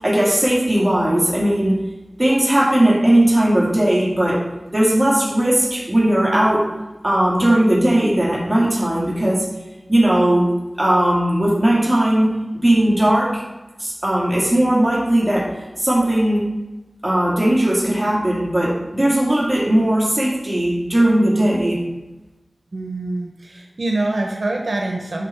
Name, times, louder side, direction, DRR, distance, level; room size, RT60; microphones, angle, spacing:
voice 1, 0.0-1.8 2.2-4.4 4.7-6.7 7.0-9.5 9.9-10.5 10.8-13.4 13.8-15.5 15.8-16.5 17.0-21.8, right 1 dB, 30° right, -4 dB, 2.2 m, -17 dB
voice 2, 22.7-25.3, right 2 dB, 90° right, 1 dB, 0.9 m, -25 dB
11.5 x 4.1 x 4.4 m, 1.1 s
wide cardioid pair, 50°, 0 cm